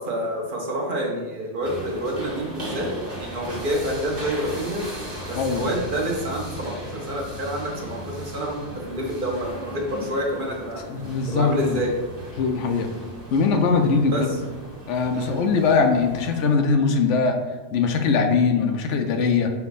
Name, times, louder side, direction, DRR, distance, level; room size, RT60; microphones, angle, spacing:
voice 1, 0.0-2.9 3.1-4.8 5.3-10.9 11.3-11.9 14.1-14.2 15.1-15.5, right 1 dB, 50° right, -1 dB, 0.9 m, -28 dB
sound 1, 1.6-16.6, equal, 30° right, 1.2 m, -37 dB
voice 2, 5.3-5.7 10.9-11.8 12.4-12.9 13.3-14.4 14.9-17.3 17.7-19.5, left 4 dB, 85° left, 5 dB, 0.9 m, -21 dB
5.5 x 2.2 x 4.1 m, 1.3 s
omnidirectional pair, 1.2 m